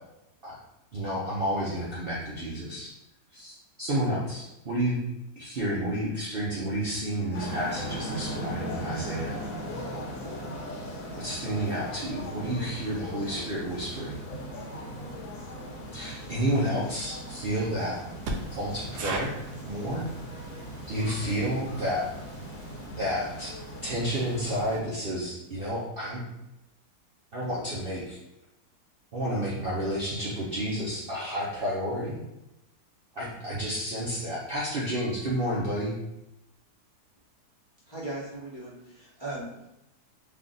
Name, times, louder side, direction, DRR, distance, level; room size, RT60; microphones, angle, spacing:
voice 1, 0.9-2.9 3.3-5.0 5.4-9.4 11.2-14.2 15.9-18.0 18.6-19.3 19.7-20.0 20.9-22.1 23.0-23.5 23.8-26.2 27.3-28.2 29.1-32.2 33.2-35.9, equal, 50° right, -6 dB, 0.7 m, -30 dB
sound 1, 7.3-24.8, equal, 65° left, 1.1 m, -39 dB
voice 2, 18.3-22.9, right 2 dB, 80° right, 2 dB, 1.2 m, -39 dB
voice 3, 37.9-39.7, right 2 dB, 20° left, -8 dB, 0.8 m, -38 dB
3.4 x 2.4 x 3.8 m, 0.92 s
omnidirectional pair, 1.7 m